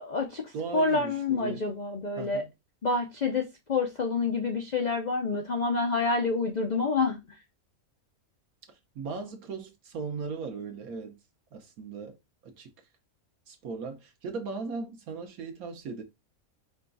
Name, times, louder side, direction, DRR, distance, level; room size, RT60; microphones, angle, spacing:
voice 1, 0.0-2.4 2.8-7.2, left 4 dB, 65° left, 0.4 m, -28 dB
voice 2, 0.5-1.7 2.2-2.5 8.9-11.2 11.5-12.2 12.4-12.7 13.5-16.0, right 4 dB, 70° right, 1.3 m, -38 dB
5.0 x 2.3 x 3.8 m
omnidirectional pair, 1.6 m